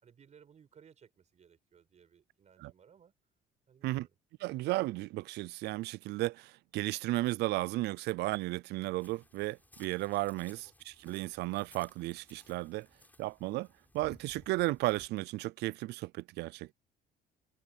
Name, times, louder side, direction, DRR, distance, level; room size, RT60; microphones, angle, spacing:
voice 1, 0.0-3.1 3.7-4.1 10.4-10.7, right 7 dB, 45° right, 5.8 m, -61 dB
voice 2, 4.4-12.9 13.2-13.7 13.9-16.7, right 19 dB, 80° right, 0.5 m, -34 dB
sound 1, 9.0-15.1, left 2 dB, 10° left, 7.7 m, -61 dB
cardioid pair, 110°, 17 cm